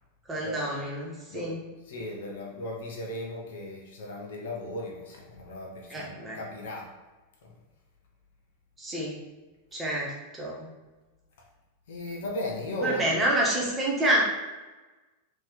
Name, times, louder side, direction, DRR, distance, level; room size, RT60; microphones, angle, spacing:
voice 1, 0.3-1.6 5.9-6.4 8.8-9.2 9.7-10.7 12.8-14.2, right 1 dB, 15° right, -4 dB, 1.3 m, -28 dB
voice 2, 1.9-6.9 7.4-7.5 11.9-13.2, left 1 dB, 55° left, 0 dB, 0.9 m, -36 dB
4.3 x 3.0 x 3.9 m, 1.2 s
figure-of-eight pair, 90°, 0 cm